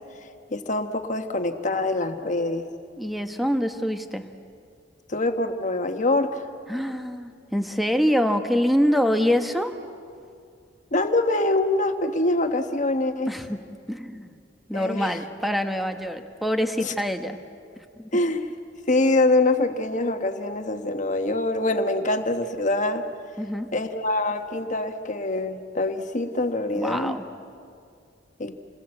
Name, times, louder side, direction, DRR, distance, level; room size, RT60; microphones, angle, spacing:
voice 1, 0.5-2.7 5.1-6.5 10.9-13.3 14.7-15.1 16.8-16.9 18.1-18.5 18.9-23.0 23.7-27.1 28.4-28.5, left 2 dB, 45° left, 7 dB, 1.4 m, -24 dB
voice 2, 3.0-4.3 6.7-9.7 13.3-14.3 14.7-17.4 17.8-18.2 23.4-23.7 26.7-27.2, equal, ahead, 6 dB, 1.2 m, -25 dB
28.0 x 20.5 x 7.8 m, 2.3 s
head